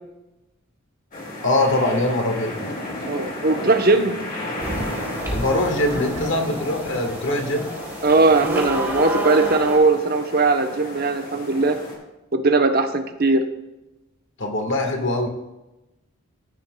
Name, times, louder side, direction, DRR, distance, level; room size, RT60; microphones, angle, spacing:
sound 1, 1.1-12.0, left 1 dB, 40° left, 2.1 m, -34 dB
voice 1, 1.4-2.5 5.3-7.7 14.4-15.3, left 1 dB, 60° left, 3 dB, 1.5 m, -22 dB
voice 2, 3.1-4.2 8.0-11.8 12.3-13.4, right 3 dB, 45° right, 7 dB, 0.8 m, -19 dB
sound 2, 4.6-9.8, equal, 15° right, 2.9 m, -29 dB
14.5 x 9.1 x 2.3 m, 0.98 s
head